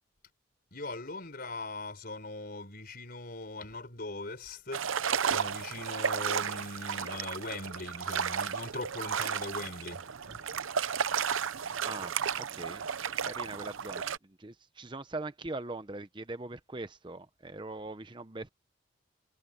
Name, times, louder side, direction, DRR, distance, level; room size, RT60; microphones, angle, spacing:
voice 1, 0.7-10.5, left 2 dB, 50° left, 4.9 m, -41 dB
sound 1, 4.7-14.2, right 7 dB, 90° right, 0.7 m, -33 dB
voice 2, 11.8-12.8 13.2-14.0 14.4-18.5, right 2 dB, 25° right, 0.7 m, -41 dB
head